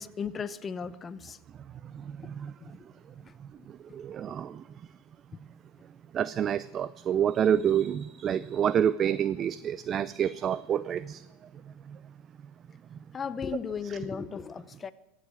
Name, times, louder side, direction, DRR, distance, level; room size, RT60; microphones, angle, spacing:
voice 1, 0.0-1.4 2.2-2.3 2.6-2.7 9.1-9.2 13.1-14.9, left 6 dB, 25° left, 0.8 m, -36 dB
voice 2, 1.9-2.5 3.9-4.6 6.1-11.2, right 9 dB, 35° right, 0.5 m, -28 dB
15.5 x 7.6 x 9.4 m
hypercardioid pair, 100°, 0 cm